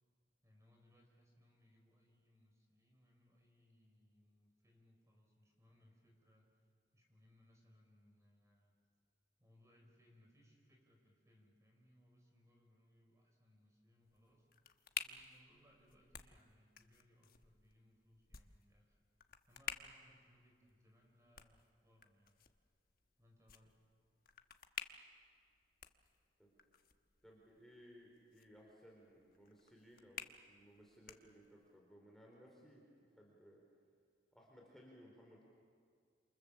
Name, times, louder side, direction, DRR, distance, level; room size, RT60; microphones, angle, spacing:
voice 1, 0.4-8.7 9.4-22.4 23.2-23.8, left 1 dB, 15° right, 1 dB, 5.3 m, -70 dB
sound 1, 14.0-31.8, left 8 dB, 55° left, 1.1 m, -53 dB
voice 2, 27.2-33.6 34.3-35.4, equal, ahead, -3 dB, 4.2 m, -61 dB
28.0 x 27.5 x 7.3 m, 2.1 s
head